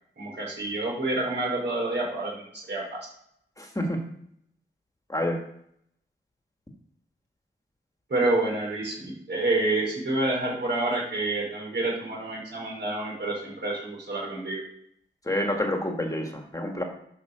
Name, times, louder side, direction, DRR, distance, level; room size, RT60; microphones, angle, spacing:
voice 1, 0.2-3.0 8.1-14.6, right 2 dB, 60° right, -2 dB, 4.8 m, -28 dB
voice 2, 3.6-4.0 5.1-5.4 15.2-16.8, left 1 dB, 15° left, 2 dB, 1.7 m, -28 dB
11.5 x 5.7 x 6.8 m, 0.71 s
wide cardioid pair, 140°, 20 cm